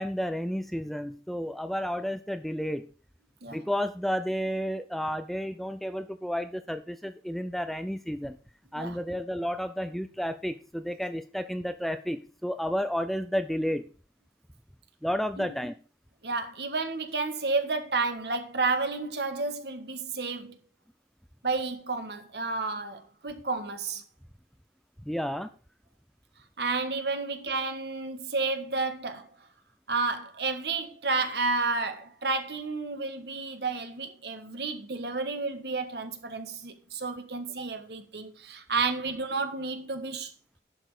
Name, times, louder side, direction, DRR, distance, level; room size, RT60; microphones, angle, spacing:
voice 1, 0.0-2.9 3.5-8.4 8.7-13.9 15.0-15.7 25.1-25.5, equal, ahead, 0.5 m, -31 dB
voice 2, 16.2-20.6 21.4-24.0 26.6-29.3 29.9-40.3, right 3 dB, 65° right, 1.6 m, -31 dB
11.0 x 6.2 x 4.9 m
head